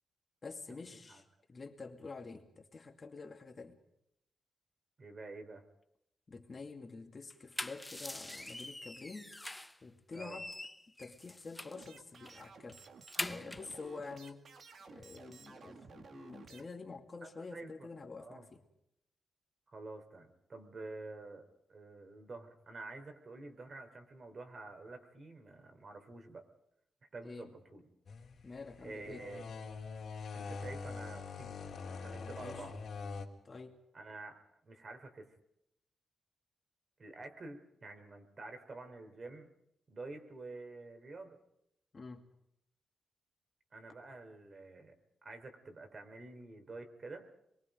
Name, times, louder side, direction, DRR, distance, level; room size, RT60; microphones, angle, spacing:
voice 1, 0.4-3.8 6.3-9.3 9.8-10.5 11.0-12.8 13.2-14.4 14.9-18.6 27.2-27.5 28.4-29.3 32.4-32.7 33.4-33.8 41.9-42.2, left 4 dB, 35° left, 4 dB, 2.4 m, -48 dB
voice 2, 5.0-5.6 10.1-10.4 17.2-17.9 18.2-18.5 19.7-21.4 21.7-26.4 27.1-27.8 28.8-29.5 30.3-32.8 33.9-34.4 34.6-35.3 37.0-39.5 39.9-41.4 43.7-45.0 45.2-47.3, right 3 dB, 40° right, 7 dB, 4.2 m, -48 dB
sound 1, 7.3-9.8 10.1-11.9 12.3-12.4 12.7-13.7, left 1 dB, 10° left, 0.9 m, -43 dB
sound 2, 11.7-16.6, right 4 dB, 55° right, 2.2 m, -55 dB
sound 3, 28.1-33.3, left 4 dB, 60° left, 3.7 m, -44 dB
27.5 x 23.0 x 5.2 m, 0.78 s
wide cardioid pair, 130°, 0 cm